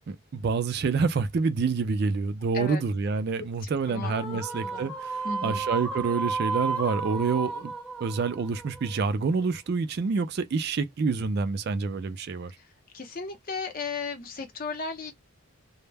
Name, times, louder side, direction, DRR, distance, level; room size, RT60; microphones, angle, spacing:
voice 1, 0.1-5.1 5.4-7.7 8.0-12.6, right 4 dB, 45° right, 0.3 m, -27 dB
voice 2, 3.6-4.9 5.2-5.6 12.6-12.7 12.9-15.1, left 4 dB, 40° left, 0.6 m, -36 dB
sound 1, 4.0-9.5, right 4 dB, 5° left, 0.7 m, -33 dB
2.1 x 2.0 x 3.3 m
head